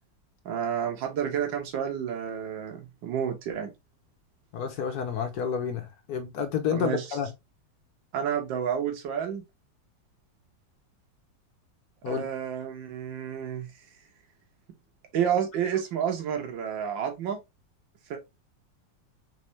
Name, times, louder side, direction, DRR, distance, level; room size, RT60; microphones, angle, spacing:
voice 1, 0.5-3.7 6.7-7.1 8.1-9.4 12.1-13.7 15.1-17.4 18.1-18.2, right 8 dB, 85° right, 1.7 m, -30 dB
voice 2, 4.5-7.3 12.0-12.2, left 7 dB, 65° left, 1.1 m, -30 dB
4.1 x 3.2 x 3.1 m
omnidirectional pair, 2.0 m